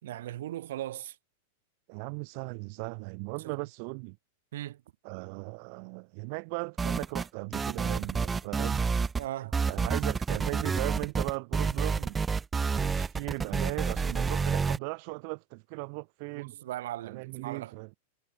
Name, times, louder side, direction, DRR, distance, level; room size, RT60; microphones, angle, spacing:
voice 1, 0.0-1.2 3.4-3.6 4.5-4.8 9.2-9.6 16.3-17.7, right 13 dB, 70° right, 2.5 m, -38 dB
voice 2, 1.9-4.2 5.0-8.8 9.4-12.2 12.7-16.5 17.0-17.9, right 38 dB, 55° right, 2.5 m, -37 dB
sound 1, 6.8-7.3 7.5-9.2 9.5-14.8, right 5 dB, 15° right, 0.3 m, -29 dB
hypercardioid pair, 105°, 0 cm